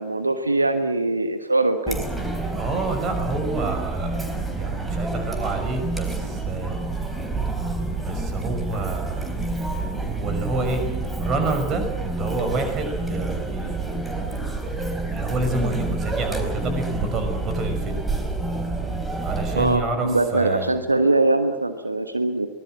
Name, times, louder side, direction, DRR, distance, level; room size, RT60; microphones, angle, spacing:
voice 1, 0.0-2.0 19.6-22.5, right 2 dB, 80° right, 8 dB, 1.4 m, -22 dB
Chatter, 1.9-19.8, right 2 dB, 10° right, 3.9 m, -28 dB
voice 2, 2.5-6.8 8.0-9.3 9.8-10.8 11.2-14.0 15.1-18.0 19.0-20.8, right 3 dB, 30° right, 6 dB, 6.0 m, -28 dB
24.0 x 20.0 x 7.6 m, 1.0 s
figure-of-eight pair, 90°, 0 cm